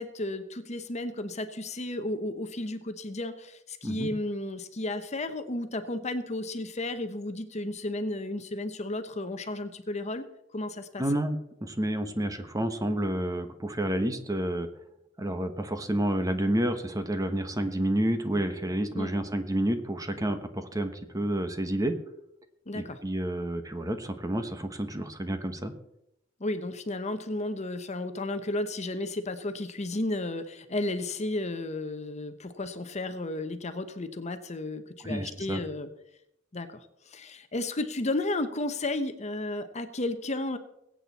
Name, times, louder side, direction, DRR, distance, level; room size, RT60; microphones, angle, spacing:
voice 1, 0.0-10.3 10.5-11.0 18.9-19.2 22.7-23.0 26.4-35.9 36.5-40.6, left 2 dB, 35° left, 9 dB, 1.0 m, -33 dB
voice 2, 11.0-14.7 15.2-22.0 22.7-25.7 35.0-35.6, right 1 dB, 20° right, 8 dB, 1.2 m, -29 dB
21.5 x 8.7 x 4.2 m, 0.81 s
head